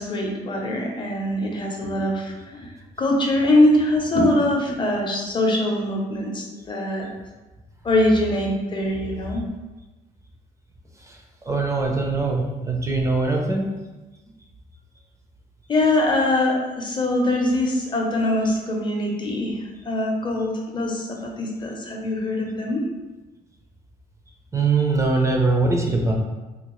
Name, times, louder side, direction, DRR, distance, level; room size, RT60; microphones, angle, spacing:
voice 1, 0.0-2.7 3.0-7.1 7.8-9.5 15.7-19.6 19.8-22.8, left 1 dB, 30° left, 0 dB, 0.7 m, -22 dB
voice 2, 11.5-13.7 24.5-26.1, right 3 dB, 20° right, 0 dB, 0.5 m, -22 dB
3.7 x 2.4 x 3.0 m, 1.1 s
cardioid pair, 110°, 17 cm